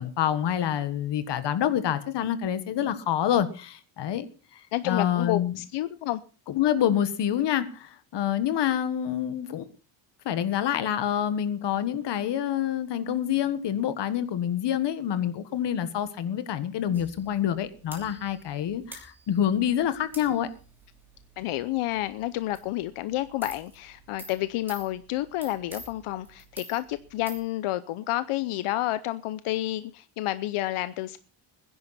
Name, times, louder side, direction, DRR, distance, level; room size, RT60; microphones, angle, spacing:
voice 1, 0.0-4.3 4.8-5.6 6.5-9.6 10.2-20.5, left 10 dB, 55° left, 1.5 m, -27 dB
voice 2, 4.7-6.2 21.4-31.2, left 15 dB, 85° left, 0.8 m, -30 dB
sound 1, 16.9-27.4, right 2 dB, 5° right, 2.9 m, -49 dB
21.0 x 10.5 x 4.2 m
cardioid pair, 180°, 49 cm